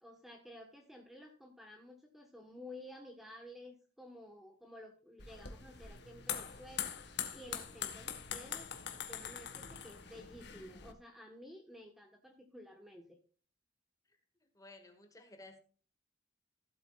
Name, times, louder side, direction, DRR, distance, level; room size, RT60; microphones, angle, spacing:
voice 1, 0.0-8.7 9.0-13.2, left 1 dB, ahead, 1.5 m, -53 dB
sound 1, 5.2-10.9, left 8 dB, 65° left, 1.6 m, -43 dB
voice 2, 14.1-15.6, left 2 dB, 20° left, 2.2 m, -56 dB
16.0 x 8.3 x 2.5 m
head